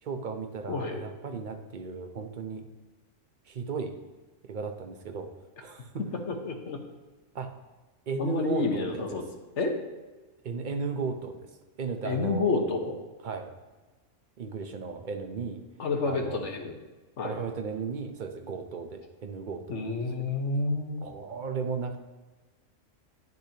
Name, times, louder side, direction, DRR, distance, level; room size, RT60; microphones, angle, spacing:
voice 1, 0.0-2.7 3.5-3.9 4.4-5.3 5.6-6.2 7.3-7.5 8.1-9.3 10.4-11.5 11.8-12.7 13.2-13.5 14.4-15.6 16.0-16.5 17.2-19.8 20.1-20.3 21.0-22.0, right 5 dB, 45° right, 6 dB, 0.7 m, -35 dB
voice 2, 0.7-1.0 6.3-6.8 8.2-9.2 9.6-9.7 12.0-12.9 15.8-16.7 17.2-17.4 19.7-21.0, left 3 dB, 65° left, 3 dB, 1.3 m, -29 dB
10.0 x 6.7 x 2.8 m, 1.2 s
omnidirectional pair, 1.3 m